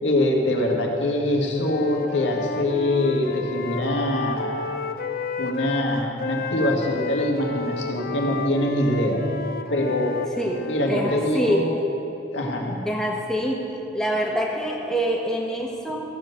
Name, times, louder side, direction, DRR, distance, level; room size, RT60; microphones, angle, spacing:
voice 1, 0.0-4.8 5.4-9.2 9.7-10.1 10.6-11.7 12.3-12.8, left 1 dB, 75° left, 0 dB, 1.9 m, -24 dB
Wind instrument woodwind instrument, 1.5-5.9 6.2-11.0, left 4 dB, 55° left, 0.6 m, -32 dB
voice 2, 10.4-11.9 12.8-13.6 13.9-16.0, equal, 5° left, -2 dB, 1.6 m, -25 dB
15.0 x 8.1 x 6.7 m, 2.8 s
head